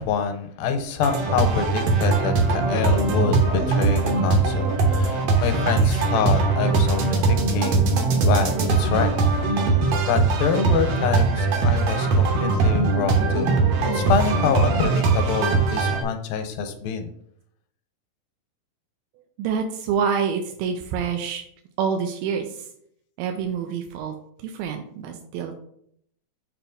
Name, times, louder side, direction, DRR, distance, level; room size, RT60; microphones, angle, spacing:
voice 1, 0.0-7.9 8.2-8.5 8.8-9.1 9.6-9.7 10.0-13.5 13.9-17.1, left 6 dB, 80° left, 7 dB, 2.4 m, -26 dB
sound 1, 1.0-16.0, right 4 dB, 65° right, 1.7 m, -21 dB
voice 2, 19.2-21.4 21.8-22.7 23.2-24.2 24.4-25.6, right 6 dB, 85° right, 4 dB, 2.4 m, -27 dB
6.8 x 3.0 x 5.0 m, 0.69 s
omnidirectional pair, 4.1 m